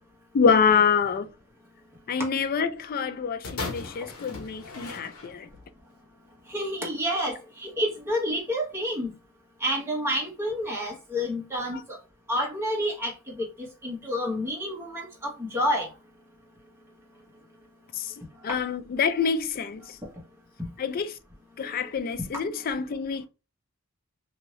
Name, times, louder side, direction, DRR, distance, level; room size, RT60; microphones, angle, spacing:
voice 1, 0.3-1.3 2.1-5.5 17.9-18.1 18.4-20.0 20.8-21.1 21.6-23.3, left 6 dB, 40° left, 0.3 m, -26 dB
sound 1, 3.4-5.7 6.5-6.6, left 3 dB, 70° left, 0.9 m, -37 dB
voice 2, 6.5-9.1 9.6-12.0 12.3-15.9, equal, 10° right, 1.1 m, -29 dB
2.7 x 2.7 x 3.0 m
head